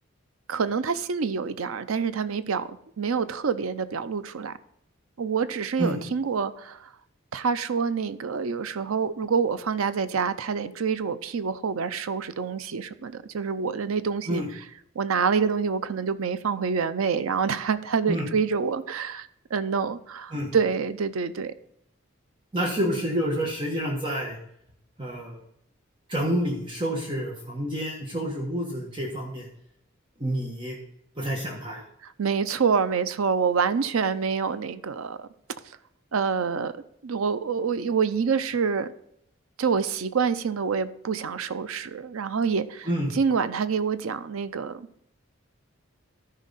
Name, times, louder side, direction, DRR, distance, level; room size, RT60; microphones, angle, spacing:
voice 1, 0.5-2.7 3.0-4.5 5.2-6.9 7.3-14.4 15.0-21.5 32.0-35.3 36.1-36.7 37.0-38.9 39.6-42.9 43.1-44.9, right 5 dB, 90° right, 13 dB, 0.5 m, -27 dB
voice 2, 22.5-24.4 25.0-25.4 26.1-29.5 30.2-30.8 31.2-31.8 42.9-43.1, equal, 25° right, -1 dB, 1.3 m, -28 dB
13.0 x 5.3 x 4.1 m, 0.74 s
head